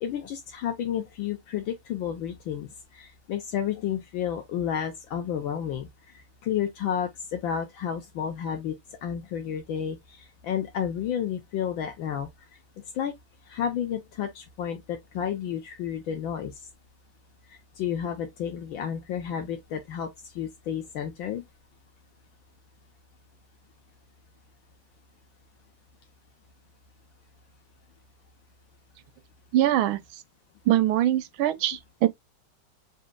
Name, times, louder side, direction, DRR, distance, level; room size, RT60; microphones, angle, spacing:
voice 1, 0.0-5.9 6.4-8.7 9.0-12.3 12.9-13.1 13.5-16.5 17.8-20.1 20.3-21.4, left 9 dB, 70° left, 1.5 m, -31 dB
voice 2, 29.5-30.0 30.7-32.1, right 13 dB, 80° right, 1.4 m, -23 dB
6.3 x 2.7 x 2.2 m
omnidirectional pair, 2.3 m